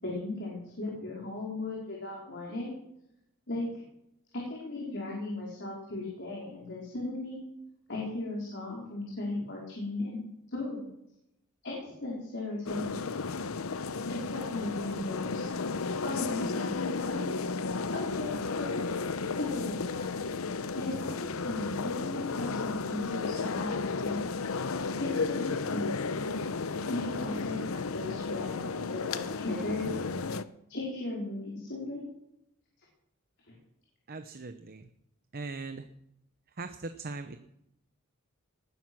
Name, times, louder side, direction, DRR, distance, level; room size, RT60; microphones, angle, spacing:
voice 1, 0.0-2.7 3.5-3.7 4.3-7.4 7.9-10.2 10.5-11.0 11.6-13.0 14.1-15.5 16.0-17.3 17.9-19.0 19.4-20.1 20.7-24.2 25.0-25.9 26.9-30.1 30.7-32.1 33.5-33.6, left 2 dB, 55° left, -3 dB, 4.3 m, -36 dB
sound 1, 12.7-30.4, left 4 dB, 75° left, 0.8 m, -33 dB
voice 2, 34.1-34.9 35.3-35.9 36.6-37.4, right 3 dB, 45° right, 8 dB, 0.8 m, -40 dB
19.5 x 11.0 x 6.2 m, 0.81 s
head